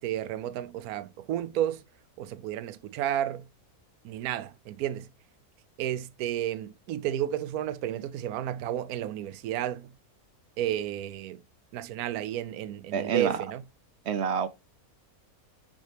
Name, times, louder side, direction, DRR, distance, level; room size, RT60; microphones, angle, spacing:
voice 1, 0.0-1.8 2.2-3.5 4.0-5.1 5.8-9.9 10.6-11.4 11.7-13.6, right 11 dB, 80° right, 1.1 m, -32 dB
voice 2, 12.9-13.4 14.1-14.5, right 7 dB, 65° right, 0.7 m, -27 dB
7.3 x 5.3 x 3.3 m
omnidirectional pair, 1.5 m